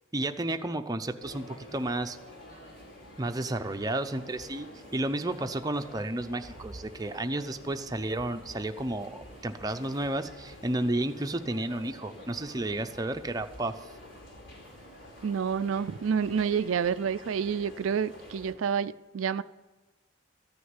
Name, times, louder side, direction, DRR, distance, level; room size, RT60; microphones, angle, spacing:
voice 1, 0.1-2.2 3.2-4.7 4.9-13.8, right 1 dB, 20° right, 0.6 m, -32 dB
sound 1, 1.2-18.5, left 1 dB, 65° left, 3.9 m, -48 dB
voice 2, 15.2-19.4, right 7 dB, 85° right, 0.4 m, -29 dB
14.5 x 6.3 x 9.6 m
head